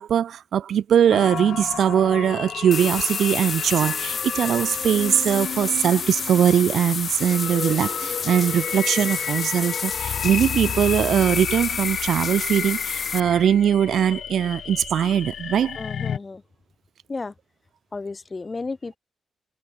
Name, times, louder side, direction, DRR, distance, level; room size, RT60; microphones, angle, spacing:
voice 1, 0.0-15.8, right 9 dB, 75° right, 0.3 m, -21 dB
sound 1, 1.1-16.2, left 8 dB, 65° left, 1.9 m, -32 dB
sound 2, 2.7-13.2, left 6 dB, 45° left, 2.2 m, -30 dB
voice 2, 15.8-16.4 17.1-17.3 17.9-19.0, left 3 dB, 25° left, 1.9 m, -33 dB
cardioid pair, 110°, 0 cm